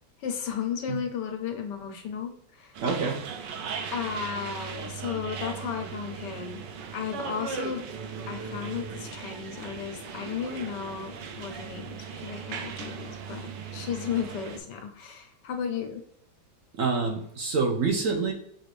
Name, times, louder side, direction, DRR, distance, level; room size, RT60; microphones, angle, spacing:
voice 1, 0.2-2.7 3.9-6.6 6.9-7.8 8.3-16.0, left 7 dB, 80° left, 5 dB, 1.4 m, -34 dB
sound 1, 2.7-14.6, right 6 dB, 90° right, 1.3 m, -38 dB
voice 2, 2.8-3.2 16.7-18.3, right 4 dB, 65° right, 2 dB, 0.9 m, -26 dB
6.6 x 2.5 x 3.1 m, 0.75 s
omnidirectional pair, 1.8 m